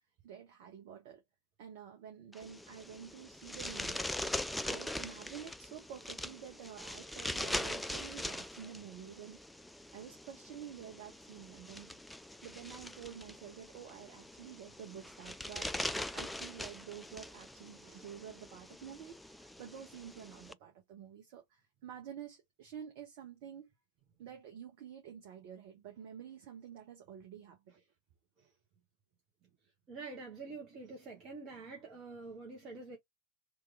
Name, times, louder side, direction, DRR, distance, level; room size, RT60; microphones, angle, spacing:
voice 1, 0.2-1.2 1.6-4.1 4.6-9.4 9.9-12.0 12.4-15.7 16.1-23.7 24.2-27.7, right 9 dB, 50° right, 1.4 m, -49 dB
sound 1, 2.3-20.5, left 1 dB, 5° left, 0.3 m, -42 dB
voice 2, 29.9-33.0, right 3 dB, 30° right, 1.2 m, -46 dB
3.4 x 3.1 x 3.5 m
figure-of-eight pair, 90°, 0 cm